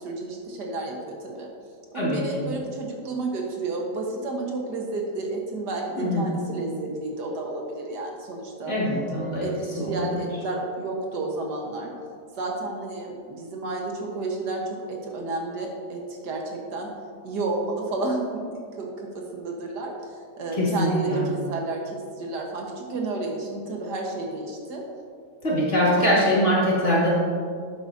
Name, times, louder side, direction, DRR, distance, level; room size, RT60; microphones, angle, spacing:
voice 1, 0.0-1.5 1.9-8.8 9.4-11.9 12.4-16.9 17.2-20.1 20.4-24.8 25.9-26.1, right 2 dB, 75° right, 0 dB, 1.8 m, -31 dB
voice 2, 1.9-2.5 6.0-6.3 8.6-9.5 9.8-10.2 20.5-21.2 25.4-27.1, equal, 45° left, -7 dB, 2.6 m, -23 dB
11.5 x 8.0 x 2.6 m, 2.1 s
omnidirectional pair, 1.8 m